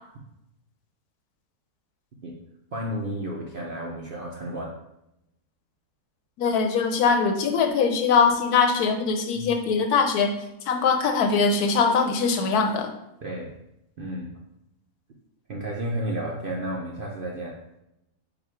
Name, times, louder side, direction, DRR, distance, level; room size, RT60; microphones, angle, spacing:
voice 1, 2.7-4.7 9.3-9.5 13.2-13.5 14.0-14.3 15.5-17.5, right 1 dB, 55° right, -3 dB, 0.6 m, -32 dB
voice 2, 6.4-10.3 10.7-12.9, left 5 dB, 80° left, 5 dB, 1.1 m, -22 dB
5.2 x 2.4 x 4.4 m, 0.84 s
omnidirectional pair, 1.6 m